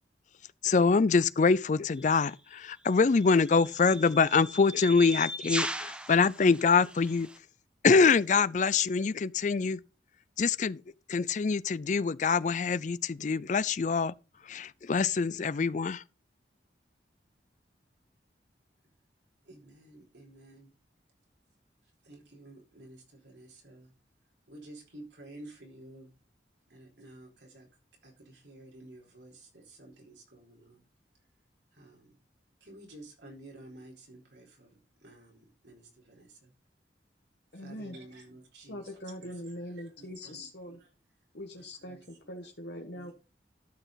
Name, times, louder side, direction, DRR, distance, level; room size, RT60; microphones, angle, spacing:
voice 1, 0.6-7.3 7.8-9.8 10.4-10.8 11.1-14.1 14.5-16.0, left 5 dB, 40° left, 0.4 m, -25 dB
sound 1, 2.0-2.2 3.2-7.4, right 1 dB, 5° right, 0.7 m, -38 dB
voice 2, 19.4-20.7 22.0-23.9 24.5-26.1 26.7-27.7 28.0-30.8 31.7-32.2 32.6-34.7 35.0-36.5 37.5-40.8 41.5-42.0 42.9-43.1, right 1 dB, 75° right, 4.3 m, -52 dB
voice 3, 37.5-38.0 38.7-40.8 41.3-43.1, left 1 dB, 65° left, 1.4 m, -42 dB
12.5 x 6.1 x 4.0 m
head